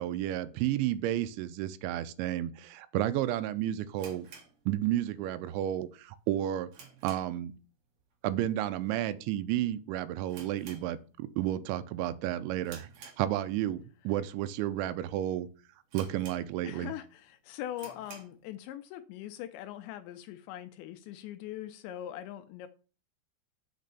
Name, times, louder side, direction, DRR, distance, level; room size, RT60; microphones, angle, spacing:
voice 1, 0.0-4.3 4.7-6.7 7.0-7.5 8.2-15.5 15.9-16.9, right 13 dB, 85° right, 13 dB, 2.8 m, -32 dB
sound 1, 3.9-5.3 5.6-5.7 6.2-7.5 7.8-8.1 8.4-8.5 9.2-9.5 9.7-9.8 10.2-11.4 11.8-12.1 12.6-13.7 14.3-14.4 15.0-15.1 15.3-15.4 15.9-16.9 17.2-17.3 17.7-18.4, right 5 dB, 50° right, 2.9 m, -51 dB
voice 2, 16.6-22.7, left 12 dB, 80° left, 10 dB, 2.7 m, -42 dB
6.5 x 6.2 x 6.8 m, 0.36 s
omnidirectional pair, 5.5 m